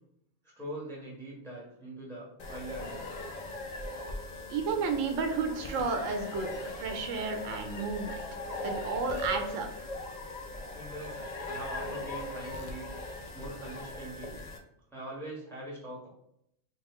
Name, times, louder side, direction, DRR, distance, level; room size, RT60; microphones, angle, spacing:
voice 1, 0.6-3.1 10.7-12.9 13.3-14.4 14.9-16.1, right 1 dB, ahead, -5 dB, 1.0 m, -42 dB
sound 1, 2.4-14.6, left 2 dB, 65° left, 0.4 m, -39 dB
voice 2, 4.5-6.5 6.8-8.1 8.6-9.7, right 4 dB, 85° right, 6 dB, 0.9 m, -32 dB
3.1 x 2.3 x 3.5 m, 0.73 s
omnidirectional pair, 1.3 m